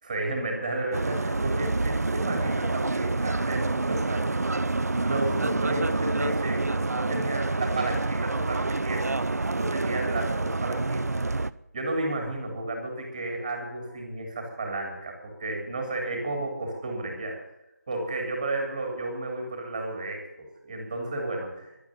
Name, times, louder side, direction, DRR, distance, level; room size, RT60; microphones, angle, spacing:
voice 1, 0.0-4.4 5.0-9.1 9.6-11.0 11.7-17.4 17.9-21.7, right 2 dB, 20° right, 2 dB, 3.4 m, -32 dB
sound 1, 0.9-11.5, right 2 dB, 70° right, 0.7 m, -27 dB
12.0 x 11.0 x 7.6 m, 0.90 s
figure-of-eight pair, 170°, 9 cm